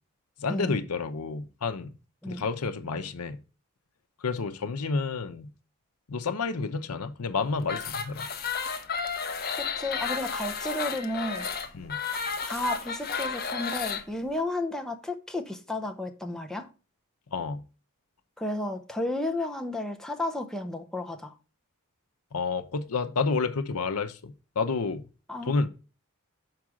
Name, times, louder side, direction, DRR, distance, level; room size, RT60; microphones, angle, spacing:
voice 1, 0.4-2.0 2.3-3.4 4.2-5.5 6.1-8.3 11.7-12.0 17.3-17.6 22.3-25.0 25.4-25.7, left 4 dB, 85° left, 0.7 m, -30 dB
sound 1, 7.6-14.0, left 5 dB, 45° left, 0.8 m, -32 dB
voice 2, 9.6-11.5 12.5-16.7 18.4-21.3 25.3-25.7, left 1 dB, ahead, 0.7 m, -32 dB
6.0 x 4.8 x 6.1 m
head